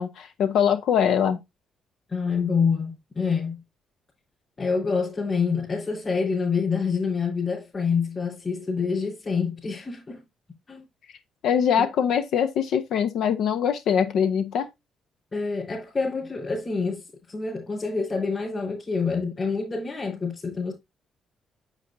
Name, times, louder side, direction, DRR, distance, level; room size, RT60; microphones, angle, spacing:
voice 1, 0.0-1.4 11.4-14.7, left 8 dB, 75° left, 0.8 m, -23 dB
voice 2, 2.1-3.6 4.6-10.2 10.7-10.8 11.8-11.9 15.3-20.7, left 5 dB, 35° left, 4.8 m, -27 dB
8.3 x 7.6 x 2.6 m
cardioid pair, 90°, 0 cm